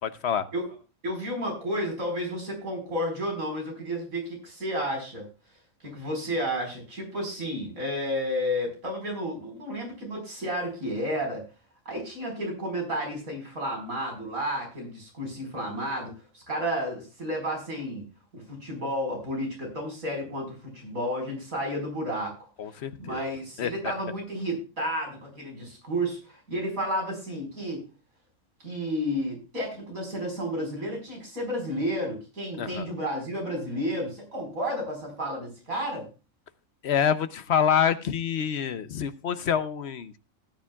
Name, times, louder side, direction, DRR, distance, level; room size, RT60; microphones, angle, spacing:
voice 1, 0.0-0.4 22.6-23.2 23.6-23.7 32.6-32.8 36.8-40.2, left 8 dB, 60° left, 12 dB, 0.9 m, -26 dB
voice 2, 1.0-5.3 5.8-11.5 11.9-18.0 18.3-22.4 22.7-27.8 28.6-36.1, equal, 80° right, 1 dB, 5.2 m, -32 dB
18.0 x 10.0 x 2.3 m, 0.31 s
omnidirectional pair, 1.4 m